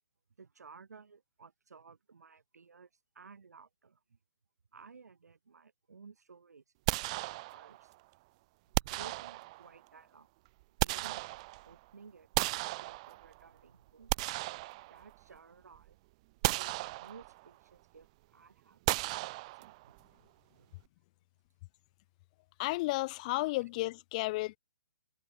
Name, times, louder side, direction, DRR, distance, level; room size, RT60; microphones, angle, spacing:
voice 1, 0.4-2.9 3.1-4.2 4.7-7.9 8.8-10.3 10.8-14.1 14.9-16.0 16.5-20.0 20.5-20.7, right 5 dB, 85° right, 4.7 m, -56 dB
sound 1, 6.9-7.9 8.7-9.8 10.5-11.8 12.3-13.5 13.9-15.4 15.7-15.9 16.4-17.5 18.9-20.0, right 22 dB, 25° right, 0.5 m, -35 dB
voice 2, 22.6-24.6, left 21 dB, 25° left, 1.0 m, -33 dB
hypercardioid pair, 160°, 9 cm